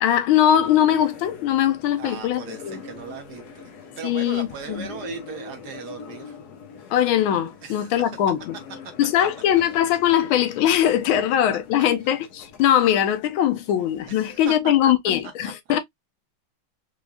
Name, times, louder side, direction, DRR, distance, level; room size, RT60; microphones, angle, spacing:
voice 1, 0.0-2.8 4.0-4.9 6.9-8.6 9.0-15.8, left 10 dB, 85° left, 1.5 m, -21 dB
sound 1, 0.5-14.5, left 5 dB, 60° left, 1.2 m, -43 dB
voice 2, 2.0-3.7 4.0-6.4 7.6-8.2 14.1-14.5 14.8-14.9 15.4-15.5, right 6 dB, 60° right, 1.2 m, -38 dB
4.8 x 2.5 x 2.2 m
omnidirectional pair, 2.2 m